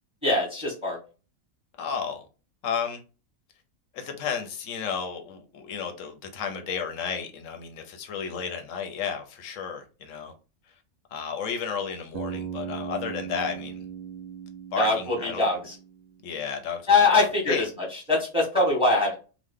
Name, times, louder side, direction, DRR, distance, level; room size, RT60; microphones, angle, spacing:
voice 1, 0.2-1.0 14.8-15.7 16.9-17.7 17.9-19.2, left 3 dB, 5° right, 1.1 m, -23 dB
voice 2, 1.8-2.3 2.6-3.0 3.9-10.3 11.1-13.8 14.7-15.4 16.2-17.7, left 6 dB, 85° left, 1.0 m, -33 dB
Bass guitar, 12.1-16.2, right 8 dB, 85° right, 1.0 m, -38 dB
3.0 x 2.1 x 3.5 m
omnidirectional pair, 1.3 m